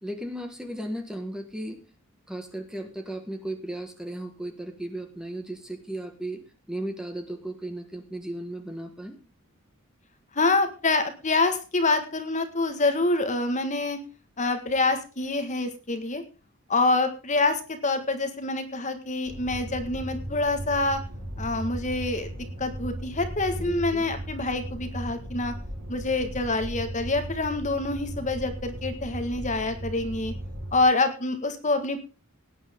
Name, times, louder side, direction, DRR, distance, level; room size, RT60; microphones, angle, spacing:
voice 1, 0.0-1.8 2.3-6.4 6.7-9.2 23.6-24.0, right 1 dB, 5° right, 5 dB, 1.6 m, -35 dB
voice 2, 10.3-14.0 14.4-16.2 16.7-21.0 21.4-22.3 22.6-25.5 25.9-30.3 30.7-32.0, left 3 dB, 35° left, 8 dB, 1.6 m, -26 dB
sound 1, 19.3-30.8, equal, 80° right, 5.3 m, -37 dB
18.0 x 9.5 x 3.7 m, 0.32 s
head